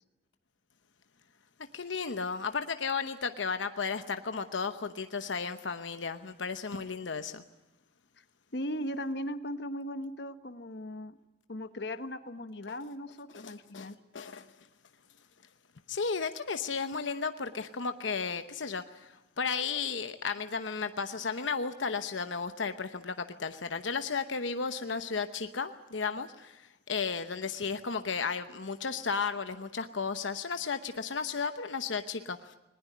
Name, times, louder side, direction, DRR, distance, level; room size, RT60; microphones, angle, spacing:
voice 1, 1.7-7.4 13.3-14.5 15.9-32.6, left 5 dB, 85° left, 9 dB, 0.9 m, -34 dB
voice 2, 8.5-11.2 11.5-14.0, equal, 60° left, 10 dB, 1.2 m, -38 dB
20.0 x 20.0 x 9.4 m, 1.0 s
head